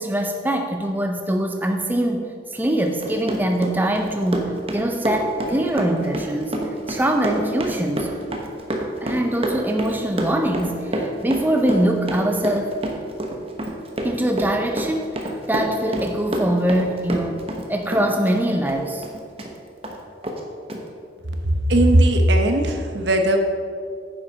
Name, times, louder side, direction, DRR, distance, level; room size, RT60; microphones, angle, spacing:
voice 1, 0.0-6.6 6.9-8.1 9.0-12.7 14.0-19.1, right 1 dB, 10° right, 3 dB, 0.5 m, -23 dB
Run, 2.9-17.7 17.9-19.5 19.8-20.0 20.2-20.4 20.7-20.8, right 1 dB, 30° right, 1.0 m, -28 dB
voice 2, 21.7-23.4, right 1 dB, 70° right, 4 dB, 1.0 m, -17 dB
9.6 x 7.2 x 4.9 m, 2.2 s
head